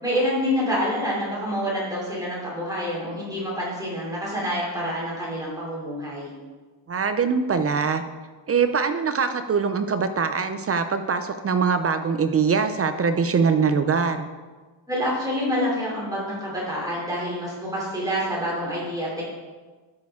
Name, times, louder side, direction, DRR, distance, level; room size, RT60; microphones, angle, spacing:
voice 1, 0.0-6.3 14.9-19.2, equal, 10° right, -6 dB, 2.9 m, -27 dB
voice 2, 6.9-8.0 8.5-14.3, right 5 dB, 35° right, 9 dB, 0.4 m, -23 dB
12.5 x 6.2 x 3.6 m, 1.3 s
wide cardioid pair, 170°, 47 cm